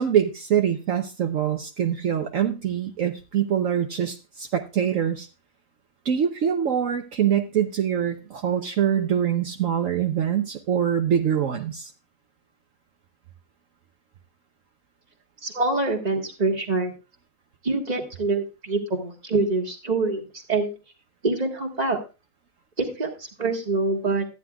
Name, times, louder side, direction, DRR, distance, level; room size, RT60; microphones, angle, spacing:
voice 1, 0.0-5.3 6.0-11.9, right 9 dB, 65° right, 4 dB, 1.2 m, -24 dB
voice 2, 15.4-16.9 17.6-20.7 21.2-22.0 22.8-24.3, right 3 dB, 30° right, 2 dB, 1.7 m, -25 dB
14.0 x 9.6 x 2.3 m, 0.30 s
omnidirectional pair, 1.5 m